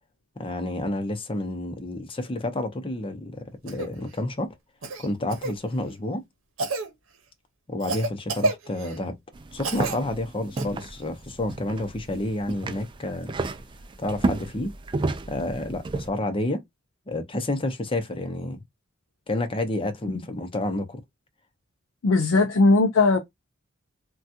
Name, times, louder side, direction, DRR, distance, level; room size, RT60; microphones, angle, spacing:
voice 1, 0.4-4.5 5.0-6.2 7.7-9.1 9.5-13.3 14.0-14.7 15.3-16.6 17.1-18.6 19.3-21.0, left 1 dB, 25° left, 0.7 m, -29 dB
Cough, 3.7-3.9 4.8-5.6 6.6-6.9 7.8-9.0 9.6-10.0 10.6-10.7 12.5-12.6, right 2 dB, 80° right, 0.9 m, -29 dB
sound 1, 9.3-16.1, right 2 dB, 25° right, 0.3 m, -32 dB
voice 2, 22.0-23.2, left 3 dB, 80° left, 0.5 m, -19 dB
3.4 x 2.3 x 2.6 m
head